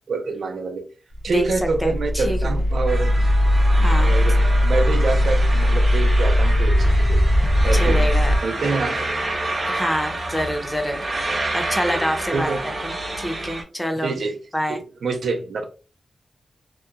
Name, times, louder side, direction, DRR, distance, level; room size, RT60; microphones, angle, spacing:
voice 1, 0.1-0.9 1.2-3.3 4.0-7.2 7.6-8.1 8.4-9.1 12.3-12.6 14.0-14.4 14.7-15.7, right 4 dB, 75° right, 0.4 m, -26 dB
sound 1, 1.1-8.4, equal, 55° left, 0.6 m, -18 dB
voice 2, 1.8-2.5 3.8-4.1 7.7-8.3 9.6-11.1 11.5-12.5 12.8-14.1 14.5-14.8, equal, 5° left, 0.5 m, -26 dB
sound 2, 2.9-13.6, right 2 dB, 40° right, 0.7 m, -29 dB
2.8 x 2.1 x 2.3 m
wide cardioid pair, 150°, 0 cm